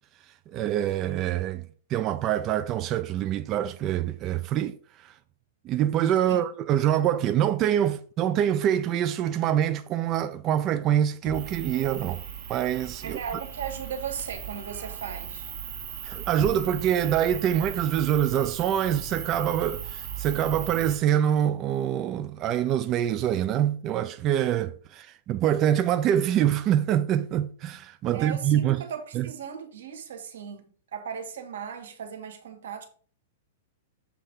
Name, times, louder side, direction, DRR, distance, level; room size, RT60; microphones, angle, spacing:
voice 1, 0.5-4.7 5.0-5.1 5.7-12.2 12.5-13.2 16.0-28.8 29.1-29.3, right 10 dB, 25° right, 0.4 m, -25 dB
Motor vehicle (road), 11.1-14.7 16.3-18.9 19.2-19.4, left 6 dB, 65° left, 3.9 m, -47 dB
sound 1, 11.3-21.0, right 9 dB, 45° right, 2.0 m, -38 dB
voice 2, 13.0-15.5 28.1-32.8, right 7 dB, 85° right, 1.7 m, -37 dB
7.5 x 3.4 x 5.4 m
supercardioid pair, 160°, 0 cm